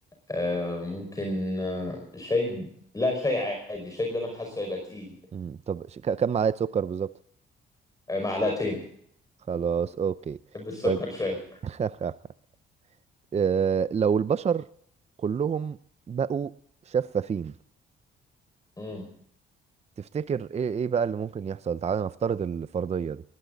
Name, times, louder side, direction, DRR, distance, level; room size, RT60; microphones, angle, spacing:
voice 1, 0.3-2.7 2.9-5.1 8.1-8.8 10.5-11.4 18.8-19.0, left 2 dB, 15° left, 5.3 m, -29 dB
voice 2, 5.3-7.1 9.5-10.4 10.8-11.0 11.6-12.2 13.3-14.6 15.2-15.8 16.1-16.5 16.9-17.5 20.0-23.2, right 7 dB, 35° right, 0.6 m, -27 dB
20.0 x 16.5 x 4.0 m
cardioid pair, 90°, 20 cm